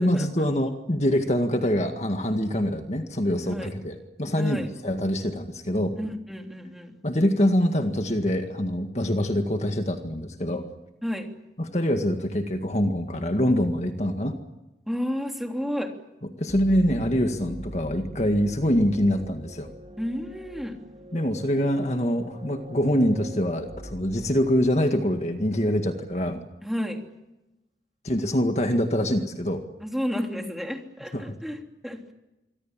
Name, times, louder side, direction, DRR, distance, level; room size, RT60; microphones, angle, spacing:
voice 1, 0.0-5.9 7.0-10.7 11.6-14.4 16.4-19.7 21.1-26.5 28.0-29.6 31.1-31.2, equal, 40° left, 5 dB, 1.9 m, -24 dB
voice 2, 4.4-4.7 6.0-7.0 11.0-11.3 14.9-15.9 20.0-20.8 26.6-27.0 29.8-32.0, equal, ahead, 2 dB, 3.1 m, -31 dB
sound 1, 16.5-25.1, equal, 35° right, 2.5 m, -42 dB
27.0 x 25.0 x 7.5 m, 0.98 s
head